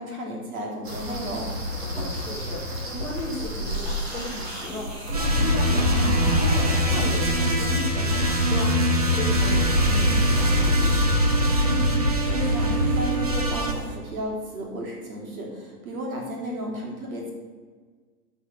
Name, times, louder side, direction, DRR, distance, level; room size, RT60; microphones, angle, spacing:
voice 1, 0.0-1.5 11.6-17.3, equal, 60° right, -1 dB, 3.6 m, -33 dB
sound 1, 0.8-14.0, equal, 40° right, 1.9 m, -34 dB
voice 2, 1.8-10.9, left 3 dB, 5° left, -7 dB, 1.2 m, -35 dB
sound 2, 5.1-13.7, equal, 25° right, 0.5 m, -22 dB
11.5 x 5.5 x 6.1 m, 1.5 s
hypercardioid pair, 180°, 48 cm